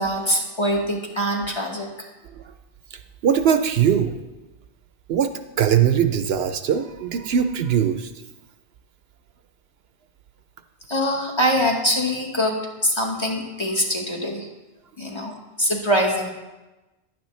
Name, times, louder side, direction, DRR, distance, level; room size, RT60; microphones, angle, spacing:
voice 1, 0.0-1.9 10.9-14.5 15.0-15.3 15.6-16.3, equal, 25° left, 0 dB, 1.1 m, -23 dB
voice 2, 2.9-4.1 5.1-5.3 5.6-8.1, right 8 dB, 70° right, 8 dB, 0.8 m, -21 dB
10.5 x 8.9 x 3.1 m, 1.1 s
omnidirectional pair, 1.1 m